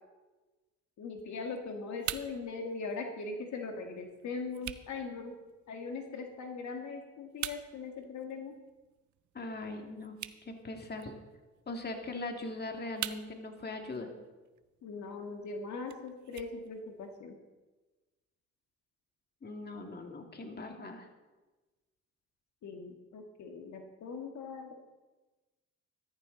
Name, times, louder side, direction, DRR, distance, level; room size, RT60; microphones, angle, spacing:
voice 1, 1.0-5.4 5.7-8.5 14.8-17.4 22.6-24.7, left 4 dB, 70° left, 3 dB, 1.7 m, -40 dB
sound 1, 1.2-17.2, right 13 dB, 75° right, 0.7 m, -47 dB
voice 2, 9.3-10.2 10.4-11.1 11.7-14.1 19.4-21.1, left 2 dB, 35° left, 3 dB, 2.2 m, -40 dB
14.0 x 14.0 x 3.9 m, 1.2 s
cardioid pair, 90°, 30 cm